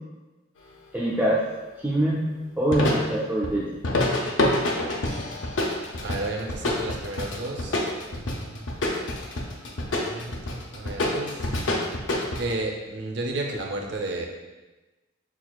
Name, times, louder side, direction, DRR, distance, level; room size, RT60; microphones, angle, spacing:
voice 1, 0.9-1.5 1.8-2.2 2.6-3.7, right 1 dB, 10° right, -7 dB, 0.3 m, -24 dB
sound 1, 2.7-3.0 3.4-3.5 3.8-12.5, left 1 dB, 70° left, 0.5 m, -27 dB
voice 2, 6.0-7.8 8.1-8.7 9.8-11.5 12.4-14.3, right 2 dB, 60° right, 1 dB, 0.6 m, -32 dB
5.8 x 2.4 x 2.3 m, 1.1 s
head